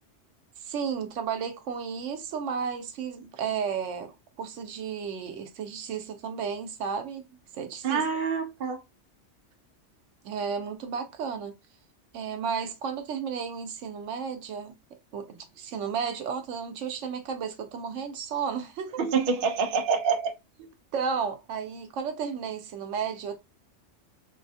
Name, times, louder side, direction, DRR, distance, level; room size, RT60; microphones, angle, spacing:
voice 1, 0.6-7.2 7.5-8.1 10.2-11.6 12.1-14.8 15.1-19.0 20.6-23.4, right 6 dB, 80° right, 0.9 m, -33 dB
voice 2, 7.8-8.8 19.0-20.3, right 5 dB, 55° right, 0.7 m, -26 dB
3.2 x 2.7 x 2.6 m
omnidirectional pair, 1.3 m